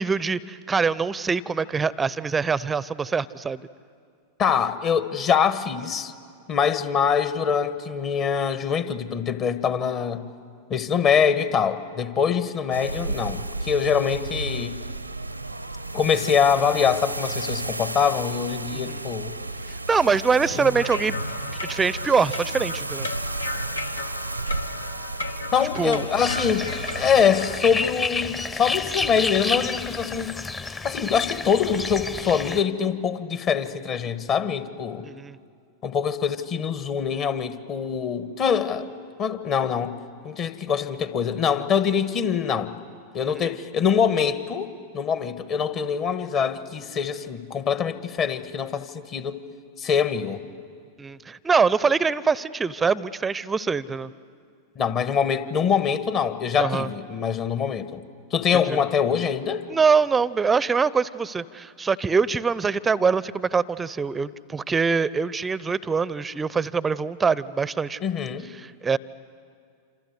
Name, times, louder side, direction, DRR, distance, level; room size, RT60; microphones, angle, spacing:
voice 1, 0.0-3.6 18.7-19.0 19.9-21.1 21.6-23.1 25.8-26.1 35.0-35.4 43.3-43.5 51.0-54.1 56.6-56.9 58.7-58.8 59.7-68.0 68.6-69.0, right 5 dB, 15° right, 20 dB, 0.7 m, -24 dB
voice 2, 4.4-6.1 6.5-10.2 10.7-14.8 15.9-19.3 20.5-20.8 25.5-26.7 26.9-30.3 30.6-35.1 35.8-38.9 39.2-40.0 40.2-42.8 43.1-49.4 49.8-50.4 54.8-58.0 58.3-59.7 68.0-68.5, left 7 dB, 35° left, 12 dB, 1.3 m, -24 dB
sound 1, 12.7-27.3, right 2 dB, 85° right, 0.9 m, -33 dB
sound 2, 20.7-27.6, left 3 dB, 75° left, 1.3 m, -35 dB
sound 3, 26.2-32.6, left 3 dB, 15° left, 0.9 m, -30 dB
27.5 x 27.0 x 8.1 m, 2.3 s
figure-of-eight pair, 90°, 0 cm